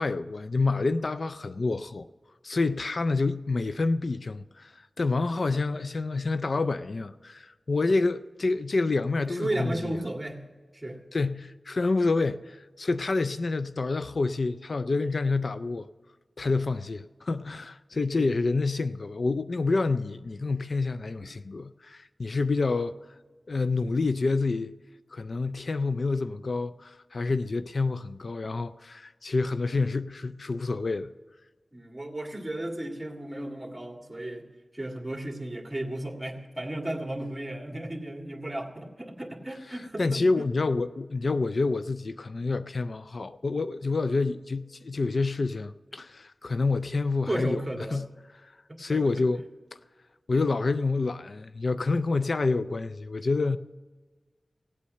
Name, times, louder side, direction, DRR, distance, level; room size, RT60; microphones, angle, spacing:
voice 1, 0.0-2.1 2.4-9.9 11.1-15.9 16.4-22.9 23.5-24.7 25.1-31.1 40.0-47.6 47.9-48.1 48.8-49.5 50.3-53.6, left 3 dB, 65° left, 0.4 m, -28 dB
voice 2, 9.3-10.4 10.7-11.0 18.2-18.3 21.2-21.3 31.7-34.5 34.7-40.4 47.3-48.0 48.7-49.0, right 1 dB, 20° right, 2.0 m, -34 dB
17.0 x 8.5 x 6.5 m
wide cardioid pair, 55°, 0 cm